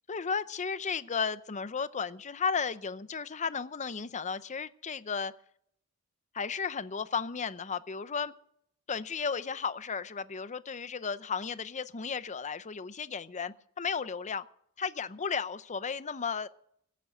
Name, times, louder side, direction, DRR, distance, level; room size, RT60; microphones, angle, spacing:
voice 1, 0.1-5.3 6.3-8.3 8.9-14.5 14.8-16.5, left 5 dB, 35° left, 15 dB, 0.6 m, -34 dB
16.5 x 9.3 x 8.1 m, 0.69 s
head